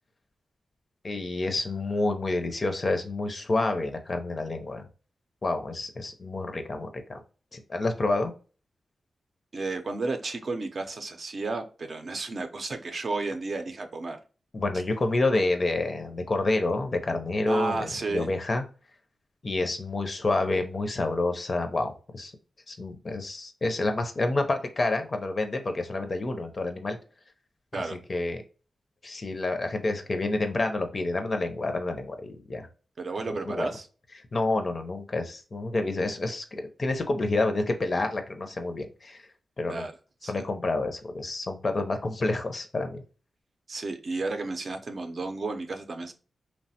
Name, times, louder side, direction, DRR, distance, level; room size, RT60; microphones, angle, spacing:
voice 1, 1.0-4.9 5.4-7.2 7.5-8.3 14.5-18.6 19.4-22.3 22.7-27.0 28.1-28.4 29.0-32.7 33.4-33.7 34.3-39.2 39.6-39.8 40.3-43.0, left 2 dB, 40° left, 6 dB, 0.5 m, -28 dB
voice 2, 9.5-14.2 17.5-18.3 27.7-28.0 33.0-33.9 39.7-39.9 40.2-40.4 43.7-46.1, right 3 dB, 55° right, 6 dB, 0.5 m, -32 dB
3.0 x 2.1 x 2.7 m, 0.37 s
wide cardioid pair, 95°, 0 cm